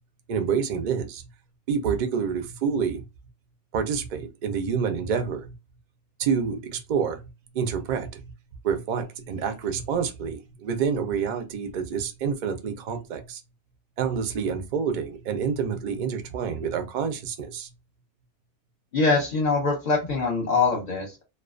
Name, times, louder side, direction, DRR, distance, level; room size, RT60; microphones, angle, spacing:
voice 1, 0.3-1.2 1.7-3.0 3.7-5.5 6.2-7.2 7.5-8.3 8.6-13.4 14.0-17.7, right 6 dB, 60° right, 0.5 m, -28 dB
voice 2, 18.9-21.2, left 4 dB, 45° left, 0.7 m, -23 dB
2.4 x 2.3 x 2.4 m
omnidirectional pair, 1.2 m